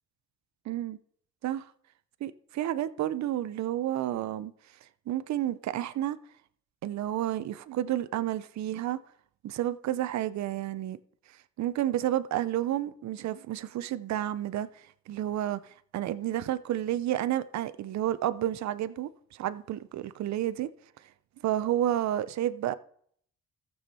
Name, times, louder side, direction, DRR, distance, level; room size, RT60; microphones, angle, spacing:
voice 1, 0.7-1.0 1.4-1.6 2.2-4.5 5.1-6.2 6.8-9.0 9.4-11.0 11.6-14.7 15.1-15.6 15.9-20.7 21.4-22.7, right 12 dB, 65° right, 0.7 m, -30 dB
14.0 x 7.2 x 4.2 m
cardioid pair, 90°, 30 cm